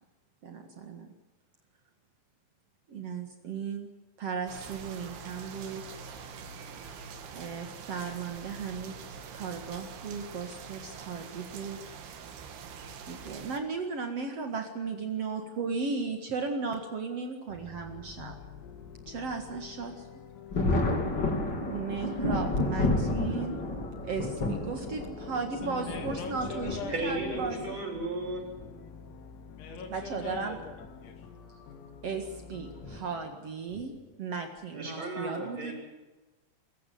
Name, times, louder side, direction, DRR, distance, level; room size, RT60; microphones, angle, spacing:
voice 1, 0.4-1.1 2.9-3.9 4.2-5.8 7.3-8.9 9.3-11.8 13.0-18.4 19.0-20.2 21.7-23.5 24.0-27.8 29.9-30.6 32.0-33.9 34.2-35.7, right 5 dB, 85° right, 5 dB, 1.3 m, -36 dB
sound 1, 4.5-13.6, right 6 dB, 60° right, 3.6 m, -44 dB
sound 2, 17.5-33.0, left 6 dB, 85° left, 4.8 m, -48 dB
Thunder, 20.5-27.6 28.6-28.7 30.1-30.4 30.8-30.9 32.8-33.0 33.7-34.1, left 2 dB, 30° left, 2.5 m, -31 dB
voice 2, 25.6-27.9 29.6-31.3, left 5 dB, 65° left, 5 dB, 4.6 m, -42 dB
voice 3, 26.9-28.4 34.7-35.7, right 2 dB, 30° right, 1 dB, 7.2 m, -34 dB
26.0 x 15.0 x 9.4 m, 1.1 s
omnidirectional pair, 5.9 m